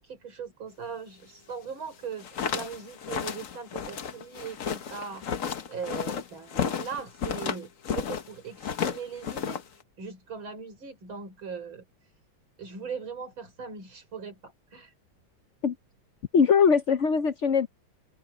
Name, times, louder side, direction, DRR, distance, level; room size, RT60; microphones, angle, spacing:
voice 1, 0.0-5.2 5.7-9.6 10.0-11.8 12.6-14.9, right 6 dB, 80° right, 5.8 m, -39 dB
sound 1, 2.0-8.3 8.6-9.8, left 7 dB, 50° left, 1.3 m, -32 dB
voice 2, 16.3-17.7, left 6 dB, 65° left, 0.7 m, -21 dB
omnidirectional pair, 2.2 m